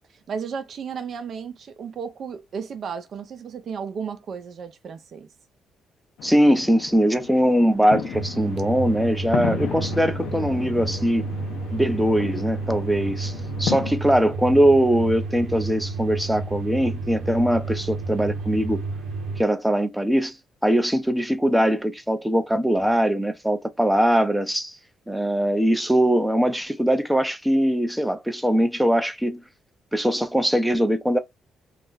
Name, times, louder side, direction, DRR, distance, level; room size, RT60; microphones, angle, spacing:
voice 1, 0.3-5.3, right 6 dB, 60° right, 0.6 m, -34 dB
sound 1, 6.2-13.9, left 8 dB, 80° left, 0.6 m, -34 dB
voice 2, 6.2-11.3 11.7-13.3 13.6-18.8 19.4-20.4 20.6-24.8 25.1-29.4 29.9-31.2, equal, 5° right, 0.5 m, -21 dB
sound 2, 8.1-19.4, right 3 dB, 85° right, 0.8 m, -31 dB
2.4 x 2.1 x 3.9 m
cardioid pair, 90°, 0 cm